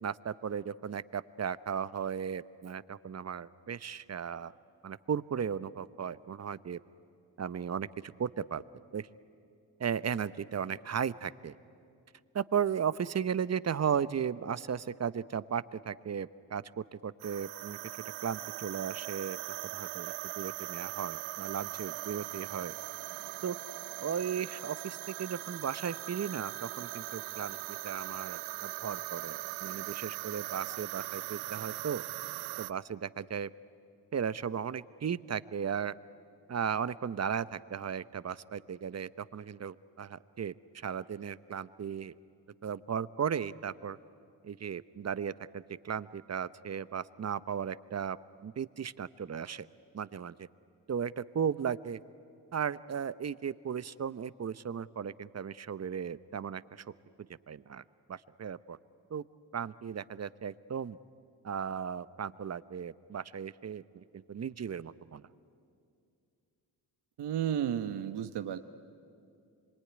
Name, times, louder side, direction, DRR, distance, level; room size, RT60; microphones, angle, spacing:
voice 1, 0.0-4.5 4.8-6.8 7.4-8.6 8.9-9.1 9.8-11.6 12.3-17.8 18.2-19.4 19.7-22.7 23.4-23.6 24.0-32.0 32.6-33.5 34.1-35.9 36.5-42.1 42.6-44.0 44.4-48.2 48.4-49.7 49.9-50.5 50.9-52.0 52.5-56.8 57.5-57.8 58.1-58.8 59.1-59.2 59.5-61.0 61.4-65.2, right 7 dB, 35° right, 16 dB, 0.8 m, -36 dB
sound 1, 17.2-32.7, right 20 dB, 90° right, 0.6 m, -40 dB
voice 2, 67.2-68.6, right 9 dB, 60° right, 9 dB, 1.1 m, -32 dB
25.5 x 23.0 x 9.8 m, 2.5 s
supercardioid pair, 50°, 47 cm